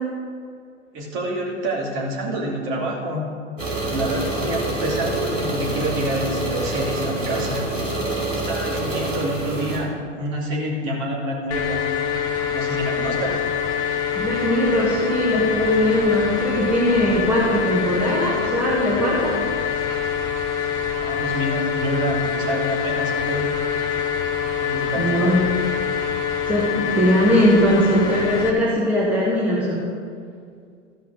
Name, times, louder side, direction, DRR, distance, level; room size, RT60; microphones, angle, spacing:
voice 1, 0.9-3.3 3.9-7.7 8.3-11.9 12.5-13.4 21.0-23.5 24.6-25.5, right 1 dB, 35° right, -2 dB, 2.5 m, -27 dB
sound 1, 3.6-9.8, right 2 dB, 85° right, 3.1 m, -26 dB
sound 2, 11.5-28.5, left 8 dB, 10° left, 0.3 m, -25 dB
voice 2, 14.2-19.4 24.9-25.4 26.4-29.8, equal, 5° right, -6 dB, 1.4 m, -20 dB
14.0 x 5.6 x 6.4 m, 2.2 s
figure-of-eight pair, 105°, 37 cm